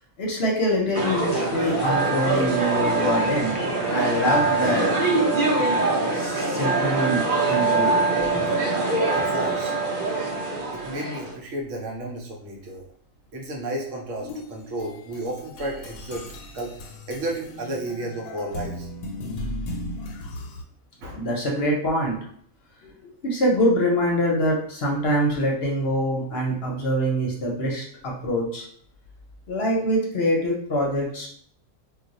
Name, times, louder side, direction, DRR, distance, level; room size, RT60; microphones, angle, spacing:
voice 1, 0.2-3.6 3.9-4.9 6.1-7.9 21.1-22.2 22.8-28.7 29.5-31.3, equal, 55° left, -2 dB, 0.8 m, -24 dB
sound 1, 0.9-11.3, right 3 dB, 45° right, 0.8 m, -23 dB
voice 2, 9.1-9.7 10.7-12.8 13.3-16.3 16.5-18.9 21.0-21.2, right 1 dB, 70° right, 0 dB, 1.0 m, -32 dB
sound 2, 14.2-20.6, left 1 dB, 90° left, 1.0 m, -36 dB
2.4 x 2.2 x 3.9 m, 0.64 s
omnidirectional pair, 1.4 m